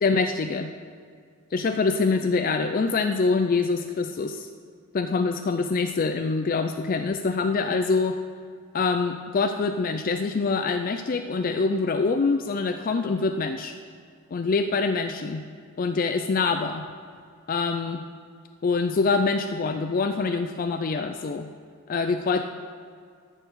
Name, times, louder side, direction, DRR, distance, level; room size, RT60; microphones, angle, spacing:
voice 1, 0.0-0.7 1.5-4.5 4.9-8.2 8.7-13.7 14.3-15.4 15.8-16.8 17.5-18.0 18.6-21.5 21.9-22.4, left 4 dB, 40° left, 7 dB, 0.3 m, -25 dB
11.5 x 4.6 x 8.0 m, 2.1 s
head